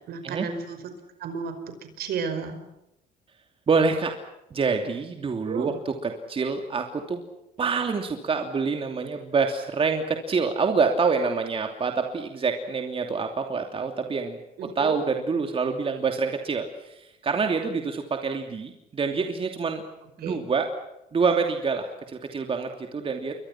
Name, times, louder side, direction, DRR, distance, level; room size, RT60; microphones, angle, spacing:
voice 1, 0.1-0.8 1.2-2.6 5.4-5.8 14.6-15.0 20.2-20.4, right 6 dB, 65° right, 8 dB, 5.2 m, -33 dB
voice 2, 3.7-4.1 4.5-7.2 7.6-19.8 20.2-20.7 21.1-23.4, right 4 dB, 35° right, 4 dB, 2.8 m, -26 dB
29.5 x 23.5 x 6.0 m, 0.86 s
cardioid pair, 110°, 17 cm